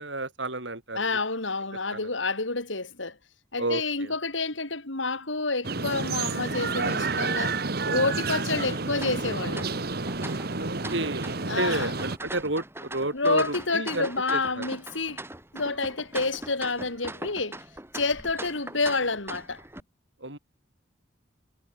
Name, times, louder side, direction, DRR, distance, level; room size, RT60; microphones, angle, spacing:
voice 1, 0.0-1.0 1.9-2.0 3.6-4.1 10.6-14.6 20.2-20.4, right 2 dB, 75° right, 7.6 m, -31 dB
voice 2, 1.0-3.2 3.5-7.6 7.9-9.7 11.5-11.9 13.1-15.2 15.5-17.6 17.9-19.6, left 3 dB, 90° left, 4.2 m, -29 dB
sound 1, 5.6-12.2, right 3 dB, 55° right, 1.6 m, -30 dB
sound 2, 9.0-19.8, right 2 dB, 15° right, 7.3 m, -41 dB
head